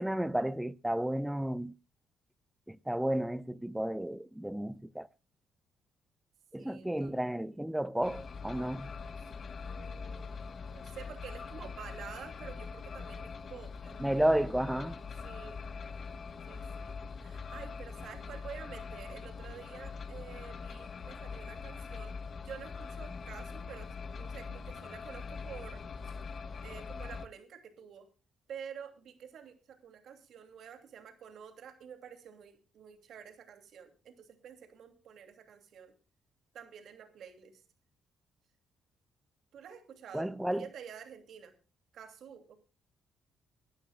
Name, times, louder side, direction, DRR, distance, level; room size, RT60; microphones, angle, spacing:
voice 1, 0.0-1.7 2.7-5.1 6.5-8.9 14.0-15.0 40.1-40.7, right 1 dB, 5° right, 0.6 m, -32 dB
voice 2, 6.6-7.3 9.2-9.3 9.6-10.3 10.6-14.4 15.2-15.6 16.5-22.2 22.4-26.2 26.6-28.1 28.5-35.9 36.5-37.6 39.5-41.5 41.9-42.6, right 8 dB, 70° right, 2.8 m, -49 dB
sound 1, 8.0-27.3, left 5 dB, 50° left, 0.9 m, -43 dB
24.0 x 12.0 x 2.4 m
cardioid pair, 90°, 0 cm